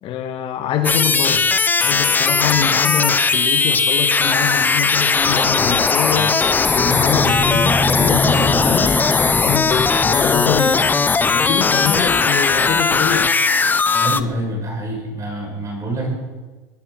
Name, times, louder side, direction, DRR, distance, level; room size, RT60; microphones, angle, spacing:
voice 1, 0.0-1.5 1.8-6.4 6.7-10.9 11.3-13.3, left 8 dB, 50° left, 6 dB, 2.0 m, -24 dB
sound 1, 0.8-14.2, left 4 dB, 15° left, 0.6 m, -17 dB
sound 2, 6.7-12.7, equal, 5° right, 1.2 m, -26 dB
voice 2, 14.0-16.1, right 1 dB, 30° right, 1 dB, 7.0 m, -26 dB
22.5 x 10.5 x 6.2 m, 1.3 s
supercardioid pair, 115°, 12 cm